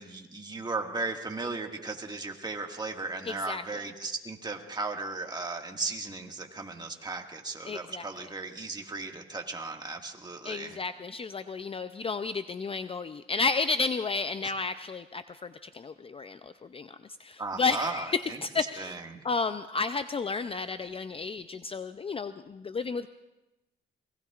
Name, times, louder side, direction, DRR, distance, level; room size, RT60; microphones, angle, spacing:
voice 1, 0.0-10.8 14.4-14.5 17.4-18.4 18.8-19.2, right 3 dB, 20° right, 2 dB, 1.9 m, -36 dB
voice 2, 3.3-3.8 7.7-8.0 10.4-19.0 19.2-23.1, left 4 dB, 30° left, 11 dB, 0.5 m, -32 dB
28.0 x 20.5 x 2.5 m, 1.0 s
cardioid pair, 90°, 20 cm